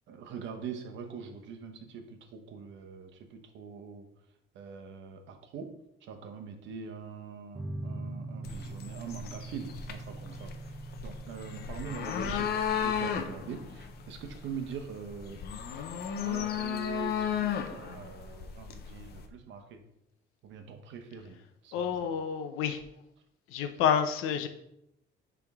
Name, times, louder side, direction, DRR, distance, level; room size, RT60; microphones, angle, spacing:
voice 1, 0.1-4.1 4.5-5.7 6.0-10.7 11.0-12.5 12.8-15.4 16.2-19.8 20.4-21.7, right 6 dB, 65° right, 6 dB, 1.1 m, -43 dB
sound 1, 7.5-15.2, right 2 dB, 10° right, 0.7 m, -44 dB
sound 2, 8.4-19.3, left 8 dB, 50° left, 0.7 m, -35 dB
voice 2, 11.9-12.4 21.7-22.8 23.5-24.5, left 8 dB, 85° left, 8 dB, 0.8 m, -29 dB
10.5 x 3.6 x 3.6 m, 0.81 s
cardioid pair, 150°, 21 cm